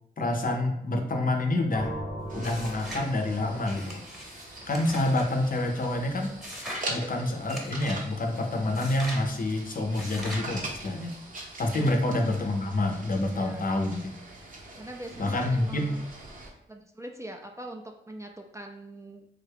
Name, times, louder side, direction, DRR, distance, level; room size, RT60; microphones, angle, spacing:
voice 1, 0.2-1.9 2.3-4.1 4.7-6.3 6.9-11.1 11.6-14.1 15.2-16.0, left 1 dB, 50° left, 3 dB, 0.6 m, -27 dB
sound 1, 1.7-5.5, equal, 65° right, 1.0 m, -40 dB
sound 2, 2.3-16.5, right 2 dB, 45° right, 0.7 m, -43 dB
sound 3, 2.4-3.1 3.6-5.3 6.4-6.9 7.5-8.0 8.7-9.3 9.9-10.5, equal, ahead, 1.0 m, -40 dB
voice 2, 14.8-16.0 16.7-19.3, right 1 dB, 15° right, 2 dB, 0.4 m, -42 dB
3.5 x 2.3 x 3.4 m, 0.76 s
cardioid pair, 60°, 19 cm